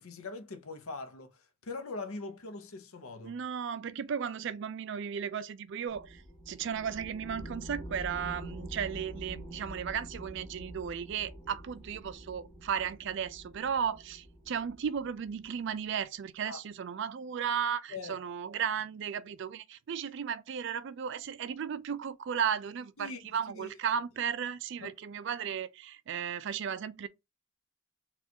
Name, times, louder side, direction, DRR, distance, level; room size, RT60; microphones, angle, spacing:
voice 1, 0.0-3.4 11.5-11.6 16.4-16.6 17.9-18.2 23.0-23.2 23.5-23.7 24.8-24.9, left 3 dB, 90° left, 0.7 m, -42 dB
voice 2, 3.2-27.1, right 7 dB, 60° right, 0.4 m, -35 dB
sound 1, 5.9-15.9, right 1 dB, ahead, 1.2 m, -46 dB
4.2 x 2.4 x 2.8 m
head